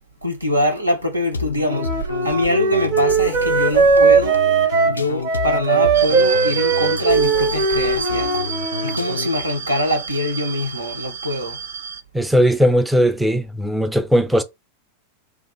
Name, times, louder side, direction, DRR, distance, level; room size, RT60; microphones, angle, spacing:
voice 1, 0.2-4.4 4.9-11.6, left 1 dB, 85° right, 0.9 m, -24 dB
sound 1, 1.3-9.5, left 5 dB, 75° left, 0.4 m, -29 dB
Wind instrument woodwind instrument, 1.6-8.9, right 5 dB, 40° right, 0.9 m, -19 dB
sound 2, 5.9-12.0, right 6 dB, 60° right, 0.5 m, -30 dB
voice 2, 12.1-14.4, equal, 5° right, 0.5 m, -18 dB
2.9 x 2.3 x 3.8 m
figure-of-eight pair, 90°, 0 cm